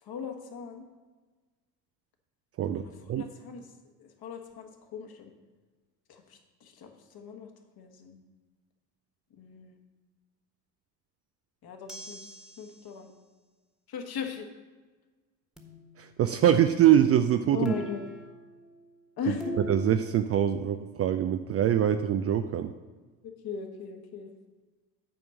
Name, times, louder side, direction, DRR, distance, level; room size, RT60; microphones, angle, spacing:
voice 1, 0.0-0.8 2.7-3.7 4.0-5.3 6.1-7.5 7.8-8.2 9.3-9.8 11.6-13.1 13.9-14.5 17.5-18.0 19.2-19.5 23.2-24.3, left 7 dB, 45° left, 4 dB, 1.5 m, -39 dB
sound 1, 11.9-12.9 15.6-16.4 17.7-18.9 19.4-20.2, right 1 dB, ahead, 1.4 m, -42 dB
voice 2, 16.0-17.7 19.7-22.7, right 10 dB, 30° right, 9 dB, 0.4 m, -24 dB
9.3 x 4.5 x 6.4 m, 1.3 s
hypercardioid pair, 65°, 49 cm